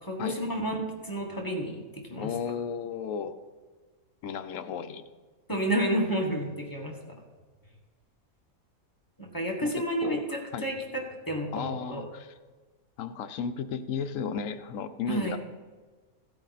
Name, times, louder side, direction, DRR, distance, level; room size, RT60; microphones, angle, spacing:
voice 1, 0.0-2.3 5.5-6.9 9.2-12.0 15.1-15.4, right 1 dB, 15° left, -1 dB, 1.4 m, -31 dB
voice 2, 2.2-3.4 4.2-5.0 9.6-9.7 10.0-10.2 10.5-10.6 11.5-12.3 13.0-15.4, left 7 dB, 70° left, 9 dB, 1.0 m, -34 dB
15.0 x 8.3 x 4.1 m, 1.4 s
omnidirectional pair, 1.5 m